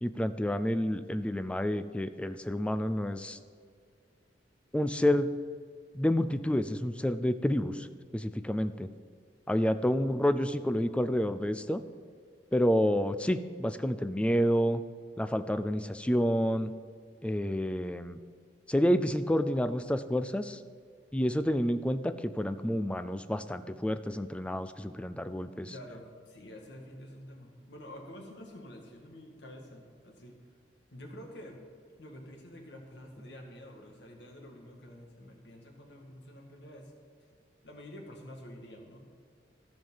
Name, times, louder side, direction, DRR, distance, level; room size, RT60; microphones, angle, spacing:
voice 1, 0.0-3.4 4.7-5.3 5.9-7.9 8.1-8.9 9.5-11.8 12.5-14.8 15.2-16.7 17.2-18.2 18.7-20.6 21.1-25.7, equal, 5° left, 11 dB, 0.4 m, -29 dB
voice 2, 10.0-10.5 25.5-30.4 30.9-31.6 32.0-36.9 37.6-39.0, left 1 dB, 80° left, 1 dB, 1.9 m, -48 dB
14.5 x 5.3 x 5.6 m, 2.1 s
head